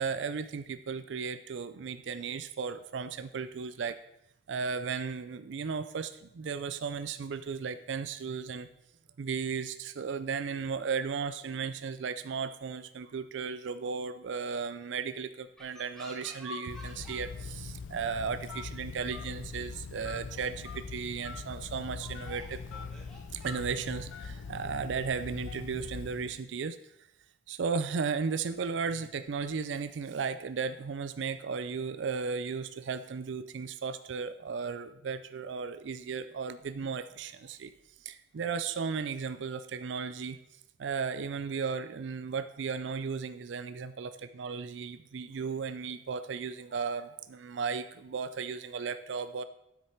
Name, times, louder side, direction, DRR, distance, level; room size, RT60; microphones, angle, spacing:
voice 1, 0.0-4.0 4.5-8.7 9.2-22.6 23.3-26.8 27.5-37.7 38.0-40.4 40.8-49.4, right 5 dB, 70° right, 11 dB, 0.4 m, -35 dB
sound 1, 15.6-17.5 17.7-18.1 18.8-18.9 19.3-19.4 19.7-20.7 21.1-21.2 21.8-25.4, left 2 dB, 5° left, 2.1 m, -50 dB
Telephone, 16.7-26.4, left 4 dB, 90° left, 0.5 m, -42 dB
9.6 x 7.7 x 4.5 m, 0.82 s
head